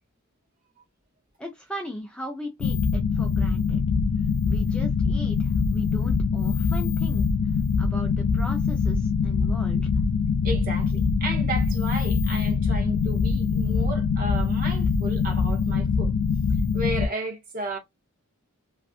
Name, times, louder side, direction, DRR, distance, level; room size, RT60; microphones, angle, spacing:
voice 1, 1.4-3.8 4.5-7.3 7.8-9.9, equal, 5° left, 0.4 m, -38 dB
sound 1, 2.6-17.1, left 5 dB, 85° left, 0.3 m, -23 dB
voice 2, 10.4-16.1 16.7-17.8, right 2 dB, 40° right, 0.7 m, -33 dB
2.5 x 2.4 x 2.3 m
head